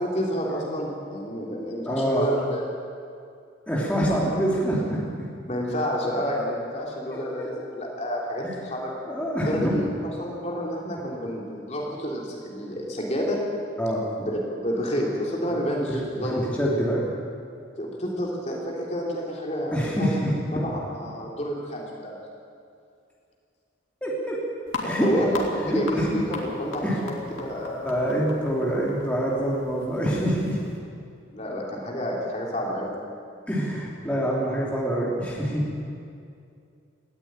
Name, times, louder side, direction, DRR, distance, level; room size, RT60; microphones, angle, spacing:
voice 1, 0.0-2.6 5.5-8.9 9.4-13.4 14.2-14.4 14.6-16.4 17.8-20.1 20.5-22.1 24.8-27.8 31.3-33.0, equal, 35° left, -2 dB, 3.4 m, -29 dB
voice 2, 1.8-2.3 3.7-5.3 7.1-7.5 9.1-9.8 13.8-14.0 15.5-15.6 15.9-17.1 19.7-20.6 24.0-24.4 24.8-25.1 25.6-26.1 26.8-27.0 27.8-30.6 33.5-35.7, equal, 5° left, -5 dB, 3.1 m, -26 dB
sound 1, 24.7-30.8, left 3 dB, 75° left, 3.3 m, -38 dB
19.5 x 15.0 x 9.2 m, 2.4 s
head